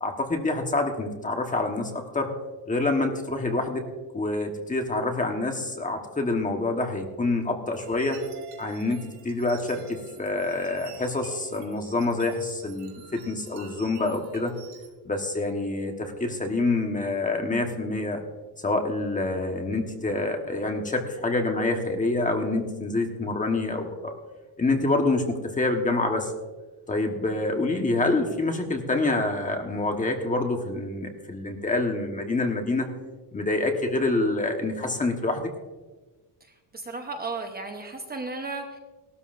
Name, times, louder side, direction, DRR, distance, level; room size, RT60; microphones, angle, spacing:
voice 1, 0.0-2.3 2.7-3.8 4.1-8.2 8.6-14.5 15.0-18.2 18.6-24.1 24.6-26.3 26.9-32.9 33.3-35.5, left 2 dB, 20° left, 3 dB, 1.3 m, -27 dB
sound 1, 7.7-14.9, right 7 dB, 70° right, 2.7 m, -48 dB
voice 2, 36.7-38.8, right 3 dB, 20° right, 4 dB, 0.9 m, -34 dB
18.0 x 13.0 x 2.6 m, 1.2 s
cardioid pair, 150°, 42 cm